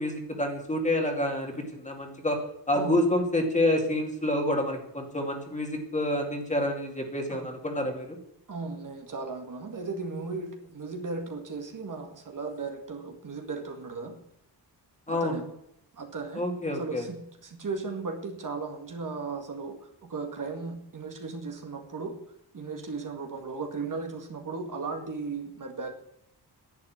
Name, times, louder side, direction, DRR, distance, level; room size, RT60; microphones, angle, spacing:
voice 1, 0.0-2.4 2.7-8.2 15.1-15.3 16.4-17.0, left 1 dB, 15° left, 2 dB, 2.4 m, -28 dB
voice 2, 8.5-14.2 15.1-15.4 15.9-16.4 16.7-22.2 22.5-25.9, right 4 dB, 50° right, 4 dB, 2.0 m, -36 dB
11.0 x 8.5 x 9.5 m, 0.77 s
wide cardioid pair, 155°, 41 cm